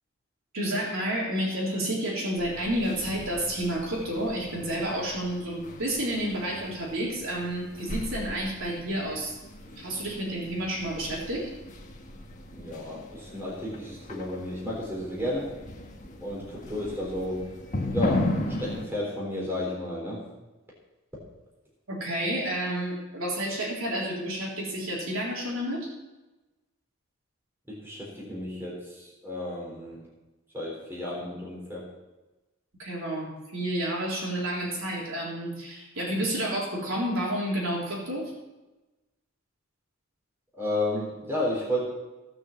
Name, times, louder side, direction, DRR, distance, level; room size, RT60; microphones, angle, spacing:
voice 1, 0.5-9.4 9.8-11.5 21.9-25.9 32.8-38.3, right 1 dB, 70° right, -3 dB, 3.7 m, -30 dB
sound 1, 2.4-18.9, left 1 dB, 35° left, 1.5 m, -37 dB
voice 2, 12.5-15.5 16.2-17.5 17.9-20.3 27.7-30.0 30.5-31.9 40.6-41.8, left 1 dB, 10° right, -5 dB, 3.7 m, -32 dB
17.5 x 6.4 x 7.2 m, 1.1 s
head